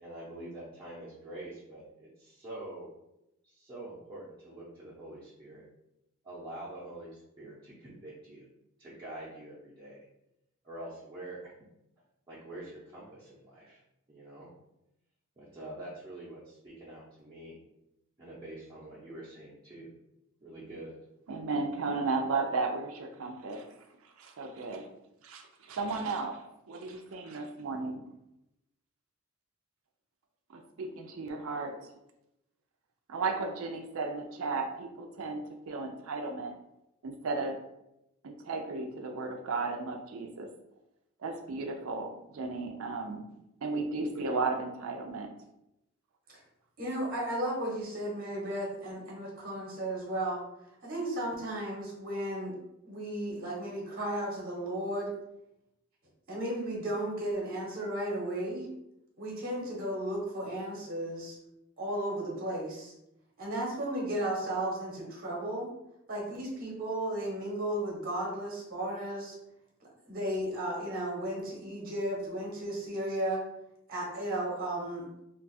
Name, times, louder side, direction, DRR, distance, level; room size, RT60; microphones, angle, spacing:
voice 1, 0.0-2.9 3.4-5.6 6.2-8.5 8.8-10.0 10.6-11.5 12.3-13.8 14.1-14.5 15.4-17.6 18.2-19.9 20.4-20.9, right 1 dB, 20° right, -10 dB, 0.7 m, -45 dB
voice 2, 21.3-23.7 24.2-24.9 25.2-26.4 26.7-28.0 30.5-31.8 33.1-36.5 37.0-37.6 38.2-40.5 41.2-43.2 43.6-45.3, right 3 dB, 80° right, 4 dB, 0.4 m, -34 dB
voice 3, 46.8-50.4 50.8-52.6 52.8-55.1 56.3-58.7 59.2-61.3 61.8-62.9 63.4-65.7 66.1-69.3 70.1-73.4 73.9-75.1, right 1 dB, 45° right, -3 dB, 0.9 m, -34 dB
2.5 x 2.3 x 4.0 m, 0.85 s
head